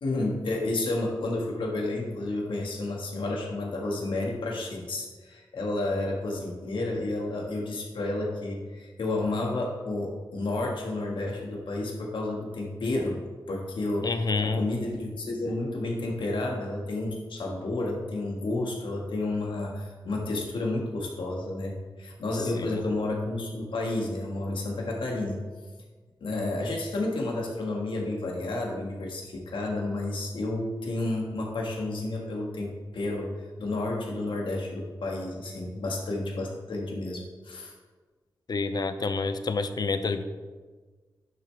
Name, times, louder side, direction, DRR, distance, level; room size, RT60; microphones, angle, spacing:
voice 1, 0.0-13.2 13.5-25.4 26.2-33.3 33.6-37.7, left 2 dB, 85° left, -2 dB, 1.8 m, -31 dB
voice 2, 14.0-14.6 22.6-22.8 38.5-40.2, left 4 dB, 55° left, 9 dB, 0.7 m, -28 dB
10.5 x 6.8 x 3.4 m, 1.4 s
wide cardioid pair, 80°, 8 cm